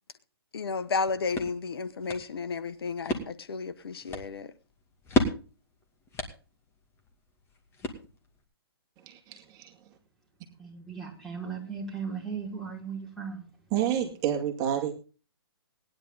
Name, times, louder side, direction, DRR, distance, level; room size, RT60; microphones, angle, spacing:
voice 1, 0.5-4.5, left 4 dB, 70° left, 1.2 m, -32 dB
sound 1, 0.8-8.4, equal, 20° left, 2.4 m, -35 dB
voice 2, 9.0-9.7 13.7-14.9, right 10 dB, 25° right, 2.4 m, -29 dB
voice 3, 10.6-13.5, right 6 dB, ahead, 5.4 m, -37 dB
18.5 x 10.5 x 3.9 m
hypercardioid pair, 135°, 13 cm